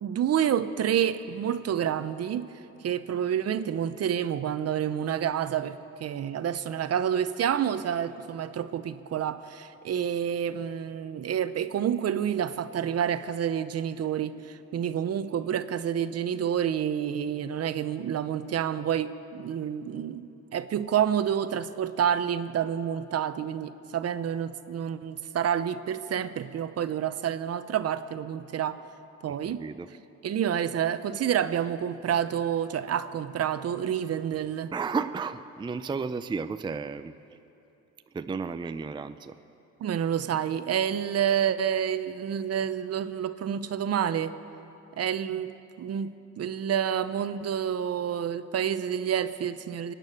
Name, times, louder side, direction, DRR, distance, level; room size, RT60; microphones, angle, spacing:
voice 1, 0.0-2.5 2.8-28.8 29.2-29.6 30.2-34.7 39.8-44.4 45.0-49.9, right 9 dB, 55° right, 12 dB, 0.7 m, -28 dB
voice 2, 29.5-29.9 34.7-37.1 38.1-39.4, right 5 dB, 15° right, 10 dB, 0.4 m, -33 dB
23.5 x 9.2 x 6.5 m, 2.8 s
cardioid pair, 90°, 30 cm